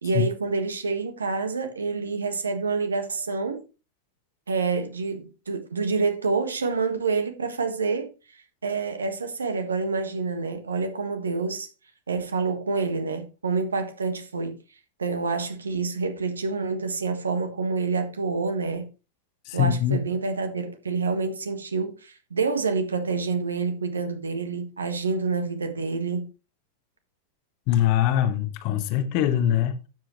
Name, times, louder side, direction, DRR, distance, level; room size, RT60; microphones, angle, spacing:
voice 1, 0.0-3.6 4.5-8.1 8.6-11.7 12.1-14.6 15.0-18.9 19.5-26.3, right 4 dB, 75° right, 1.6 m, -27 dB
voice 2, 19.5-20.0 27.7-29.9, left 11 dB, 45° left, 1.4 m, -23 dB
12.0 x 7.7 x 3.1 m
figure-of-eight pair, 90°, 0 cm